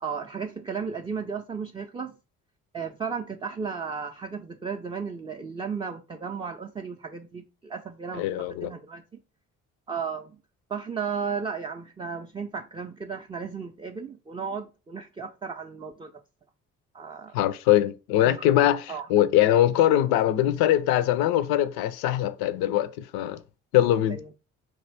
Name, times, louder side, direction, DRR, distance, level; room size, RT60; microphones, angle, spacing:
voice 1, 0.0-2.1 2.7-8.3 8.6-9.0 9.9-10.4 10.7-16.1 16.9-17.4 18.2-18.4 18.9-19.1 24.1-24.3, right 6 dB, 15° right, 0.3 m, -34 dB
voice 2, 8.1-8.7 17.3-23.4 23.7-24.2, left 12 dB, 70° left, 0.5 m, -22 dB
3.0 x 2.5 x 3.3 m
hypercardioid pair, 45°, 38 cm